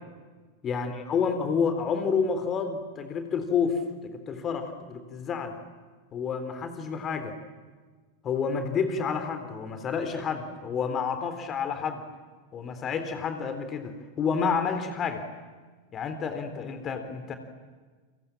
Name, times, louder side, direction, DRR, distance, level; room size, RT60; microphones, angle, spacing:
voice 1, 0.6-5.6 6.1-7.3 8.2-12.0 12.5-15.2 15.9-17.3, left 6 dB, 25° left, 8 dB, 3.7 m, -29 dB
30.0 x 26.0 x 7.5 m, 1.4 s
figure-of-eight pair, 90°, 0 cm